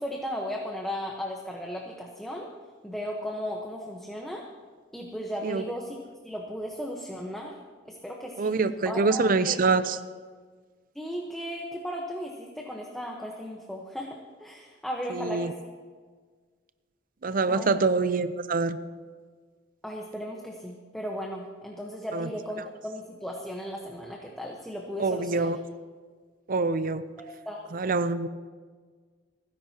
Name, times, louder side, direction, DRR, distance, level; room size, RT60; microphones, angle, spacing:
voice 1, 0.0-2.5 2.8-4.4 4.9-6.0 6.2-7.5 7.8-8.5 8.8-9.6 10.9-15.5 17.5-17.8 19.8-25.5 27.2-27.7, equal, ahead, -1 dB, 1.1 m, -36 dB
voice 2, 8.4-10.0 15.1-15.5 17.2-18.8 22.1-22.3 25.0-25.6 26.5-27.0 27.7-28.3, right 4 dB, 50° right, 12 dB, 0.6 m, -25 dB
29.0 x 10.5 x 2.9 m, 1.5 s
head